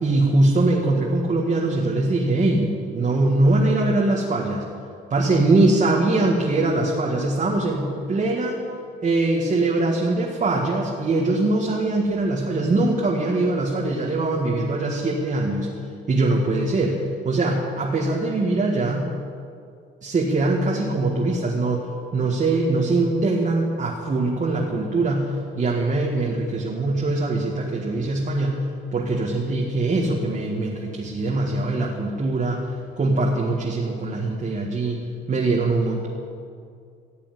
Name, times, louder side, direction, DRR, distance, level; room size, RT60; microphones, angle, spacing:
voice 1, 0.0-4.6 5.1-8.6 9.0-15.7 16.1-19.1 20.0-21.8 22.1-25.3 25.6-28.5 28.9-32.6 33.0-35.0 35.3-36.1, right 2 dB, 40° right, -2 dB, 2.0 m, -22 dB
15.5 x 7.0 x 9.8 m, 2.3 s
cardioid pair, 90°, 20 cm